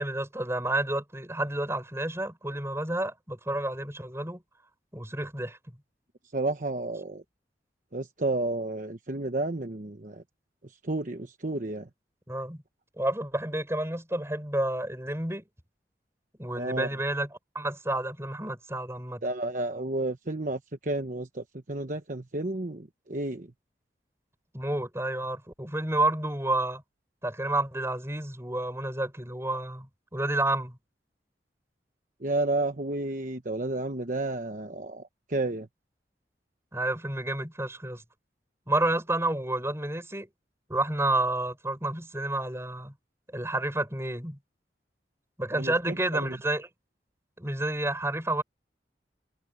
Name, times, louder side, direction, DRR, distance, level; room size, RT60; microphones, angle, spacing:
voice 1, 0.0-4.4 4.9-5.6 12.3-12.6 13.0-15.4 16.4-19.2 24.5-26.8 27.2-30.8 36.7-38.0 38.7-40.3 40.7-42.9 43.3-44.4 45.4-46.7 47.4-48.4, right 2 dB, 15° right, 7.1 m, -30 dB
voice 2, 6.3-7.2 7.9-10.2 10.8-11.9 16.5-16.9 19.2-23.5 32.2-35.0 35.3-35.7 45.5-46.4, right 2 dB, 45° right, 1.1 m, -31 dB
head